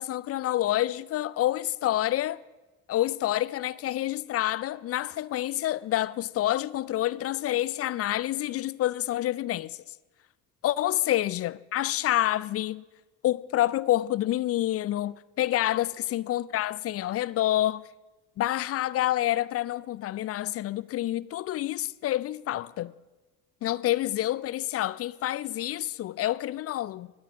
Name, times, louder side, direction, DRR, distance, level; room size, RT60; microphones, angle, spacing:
voice 1, 0.0-2.4 2.9-9.8 10.6-12.8 13.2-17.8 18.4-22.9 23.6-27.1, left 14 dB, 35° left, 0.4 m, -28 dB
22.0 x 8.8 x 3.7 m
hypercardioid pair, 55°, 43 cm